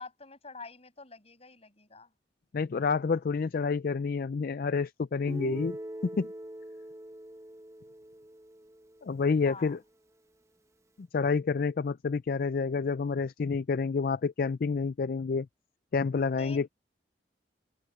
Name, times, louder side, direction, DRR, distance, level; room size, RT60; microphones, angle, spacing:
voice 1, 0.0-2.1 9.4-9.8 16.4-16.6, left 4 dB, 35° left, 7.4 m, -46 dB
voice 2, 2.5-5.8 6.0-6.3 9.0-9.8 11.0-15.5 15.9-16.7, left 5 dB, 50° left, 0.4 m, -29 dB
Guitar, 5.3-9.2, right 1 dB, 15° right, 1.2 m, -43 dB
open air
head